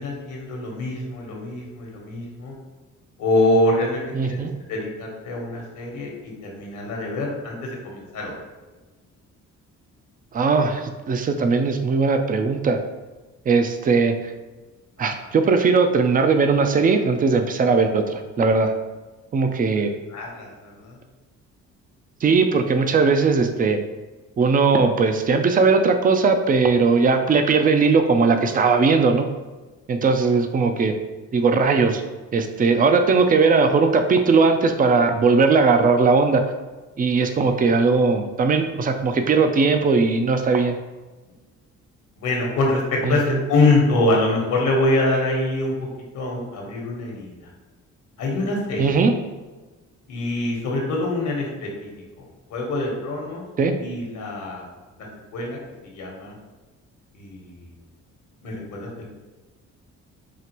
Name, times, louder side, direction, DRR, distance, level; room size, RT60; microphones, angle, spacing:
voice 1, 0.0-2.5 3.2-4.4 4.7-8.3 20.1-20.9 42.2-43.2 43.5-45.7 46.1-47.3 48.2-49.0 50.1-51.9 52.5-53.4 53.8-54.7 55.3-55.6 55.8-56.3 57.1-57.7 58.4-59.0, left 2 dB, 75° left, -1 dB, 1.2 m, -24 dB
voice 2, 4.1-4.5 10.3-12.8 13.5-14.1 15.0-18.7 19.3-19.9 22.2-23.8 24.4-29.3 29.9-30.9 31.3-32.0 32.3-36.4 37.0-40.8 43.0-43.4 48.8-49.1 53.6-53.7, right 4 dB, 30° right, 7 dB, 0.4 m, -19 dB
4.9 x 2.5 x 2.9 m, 1.2 s
cardioid pair, 90°, 30 cm